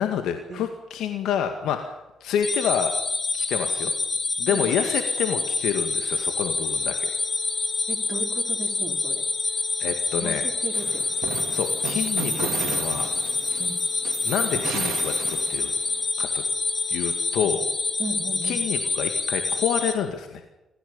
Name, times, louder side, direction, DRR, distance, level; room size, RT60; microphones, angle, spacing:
voice 1, 0.0-1.9 2.2-2.9 3.3-3.9 4.4-7.1 9.8-10.4 11.5-13.1 14.2-15.7 16.2-16.4 16.9-17.6 18.4-20.4, left 8 dB, 85° left, 6 dB, 2.0 m, -28 dB
sound 1, 2.4-19.9, left 3 dB, 40° left, 3.3 m, -27 dB
sound 2, 6.6-18.4, left 4 dB, 15° left, 5.1 m, -49 dB
voice 2, 7.9-9.2 10.2-11.0 13.6-13.8 17.4-17.5 18.0-18.6, right 3 dB, 45° right, 4 dB, 3.4 m, -36 dB
sound 3, 10.7-15.9, right 10 dB, 85° right, 1.8 m, -35 dB
26.5 x 15.0 x 7.1 m, 0.98 s
cardioid pair, 90°, 0 cm